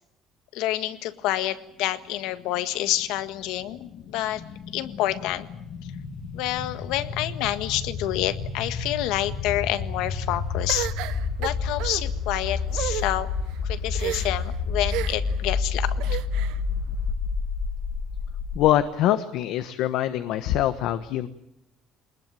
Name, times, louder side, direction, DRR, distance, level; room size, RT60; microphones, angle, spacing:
voice 1, 0.5-4.4 4.7-5.5 6.3-10.9 11.4-13.3 13.6-16.0, left 14 dB, 85° left, 11 dB, 1.6 m, -28 dB
sound 1, 2.8-18.7, left 4 dB, 45° left, 2.0 m, -30 dB
sound 2, 10.7-12.0 12.7-13.1 13.9-14.5 14.9-15.3 16.0-16.6, right 15 dB, 85° right, 1.1 m, -32 dB
voice 2, 18.5-21.3, left 12 dB, 70° left, 11 dB, 1.2 m, -24 dB
24.5 x 20.5 x 9.1 m, 0.80 s
cardioid pair, 175°, 0 cm